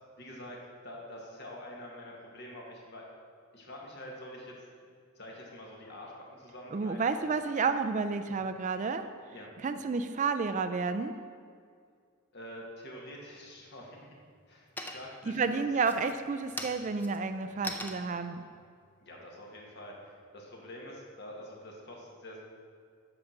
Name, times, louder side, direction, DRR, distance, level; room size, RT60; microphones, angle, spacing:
voice 1, 0.2-0.6 0.8-3.1 3.5-4.5 5.1-6.1 6.4-7.3 9.3-9.5 12.3-14.2 14.5-15.4 19.0-22.4, left 1 dB, 55° left, -1 dB, 1.8 m, -46 dB
voice 2, 6.7-9.1 9.6-11.1 15.4-18.4, right 4 dB, 35° right, 9 dB, 0.3 m, -30 dB
sound 1, 13.1-13.7 14.1-14.5 14.8-15.3 15.8-20.2, left 1 dB, 10° left, 0.6 m, -43 dB
8.6 x 6.0 x 6.5 m, 2.2 s
head